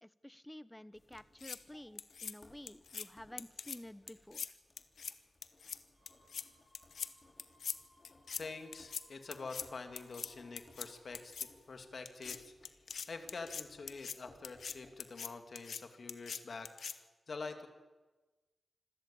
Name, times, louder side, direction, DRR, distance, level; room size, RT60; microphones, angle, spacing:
voice 1, 0.0-4.6, left 1 dB, 10° left, 16 dB, 0.9 m, -51 dB
sound 1, 0.9-15.7, left 2 dB, 35° left, 5.0 m, -65 dB
sound 2, 1.2-1.6 2.0-2.3 2.7-3.1 3.4-3.8 4.1-4.5 4.8-5.1 5.4-5.8 6.1-6.4 6.7-7.1 7.4-7.8 8.0-8.4 8.7-9.0 9.3-9.7 10.0-10.3 10.6-10.9 11.1-11.5 12.1-12.4 12.7-14.2 14.4-14.8 15.0-15.3 15.6-15.8 16.1-16.4 16.7-16.9, left 6 dB, 80° left, 1.1 m, -42 dB
sound 3, 5.9-11.8, equal, 30° right, 7.7 m, -70 dB
voice 2, 8.4-12.8 13.1-17.7, left 4 dB, 60° left, 7 dB, 2.8 m, -47 dB
26.0 x 13.5 x 8.6 m, 1.2 s
cardioid pair, 70°, 0 cm